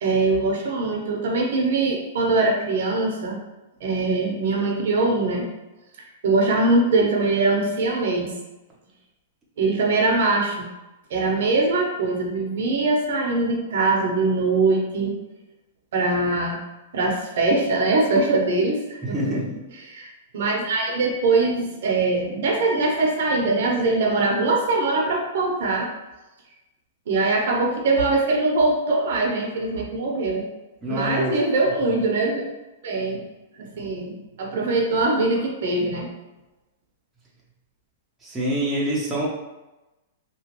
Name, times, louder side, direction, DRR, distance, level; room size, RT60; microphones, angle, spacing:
voice 1, 0.0-3.4 3.8-5.4 6.2-8.3 9.6-10.6 11.1-15.1 15.9-16.6 16.9-19.4 19.9-25.9 27.1-30.5 30.9-32.5 32.8-33.2 33.6-36.1, right 3 dB, 65° right, 0 dB, 0.7 m, -22 dB
voice 2, 19.1-19.6 30.8-31.3 38.2-39.3, equal, 10° right, -6 dB, 0.7 m, -26 dB
2.9 x 2.4 x 2.9 m, 1.0 s
hypercardioid pair, 150°, 0 cm